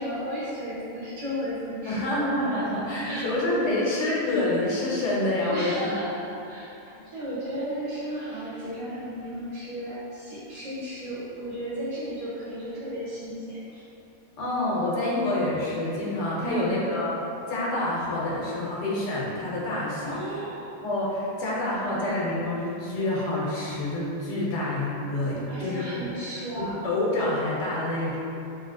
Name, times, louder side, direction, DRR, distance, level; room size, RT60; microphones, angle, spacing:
voice 1, 0.0-2.3 3.0-3.3 5.5-6.7 7.0-13.8 16.4-16.9 20.0-20.7 21.8-22.3 25.5-26.9, equal, 75° right, -13 dB, 1.8 m, -34 dB
voice 2, 1.9-5.9 14.4-17.2 17.5-20.4 20.8-26.1 26.6-28.2, left 1 dB, 60° left, -6 dB, 1.0 m, -27 dB
3.2 x 2.8 x 2.5 m, 2.8 s
omnidirectional pair, 1.5 m